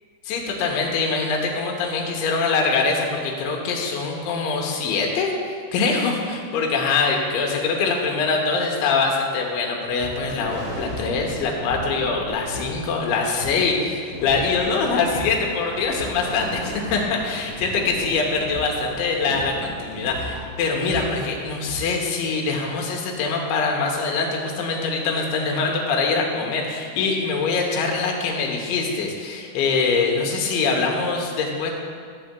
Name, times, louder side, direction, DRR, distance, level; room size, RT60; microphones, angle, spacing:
voice 1, 0.3-31.7, left 4 dB, 90° left, 0 dB, 3.3 m, -23 dB
sound 1, 10.0-10.2 10.9-11.2 11.7-12.2 12.5-13.0 13.4-13.7 14.1-14.6 15.1-15.4 15.7-16.3 16.7-17.1 17.6-17.9 18.5-18.9 19.3-19.7 20.0-22.0, left 1 dB, 50° right, 1.1 m, -37 dB
sound 2, 10.0-20.5, right 1 dB, 85° right, 4.4 m, -37 dB
15.0 x 7.4 x 2.2 m, 2.1 s
omnidirectional pair, 5.1 m